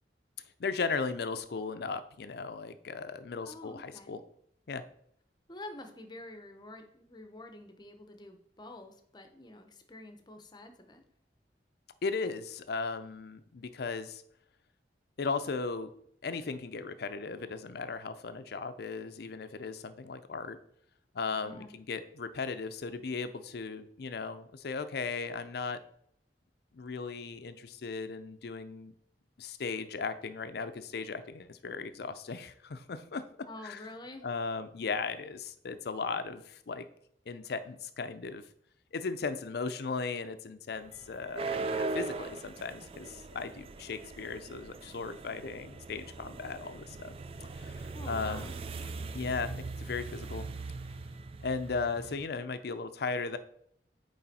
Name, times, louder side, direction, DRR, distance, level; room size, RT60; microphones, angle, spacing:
voice 1, 0.6-4.2 4.7-4.8 12.0-14.2 15.2-15.9 16.2-20.6 21.1-25.8 26.7-28.9 29.4-33.8 34.2-36.9 37.3-38.4 38.9-47.1 47.6-48.5 49.1-50.5 51.4-53.4, left 4 dB, 65° left, 11 dB, 0.5 m, -37 dB
voice 2, 3.4-4.1 5.5-11.0 21.4-21.8 33.5-34.3 47.9-48.6, left 1 dB, 25° left, 7 dB, 0.7 m, -48 dB
sound 1, 40.8-52.3, right 3 dB, 35° right, 0.3 m, -40 dB
8.7 x 3.3 x 4.1 m, 0.68 s
head